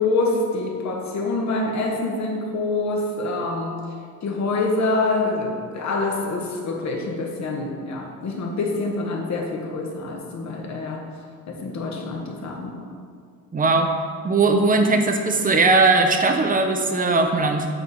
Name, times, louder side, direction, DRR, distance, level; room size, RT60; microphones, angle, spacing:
voice 1, 0.0-3.8 4.2-11.1 11.5-12.8, left 3 dB, 55° left, 0 dB, 1.1 m, -26 dB
voice 2, 13.5-13.9 14.2-17.7, right 3 dB, 25° right, 5 dB, 0.6 m, -19 dB
7.9 x 3.3 x 4.1 m, 2.1 s
cardioid pair, 115°, 32 cm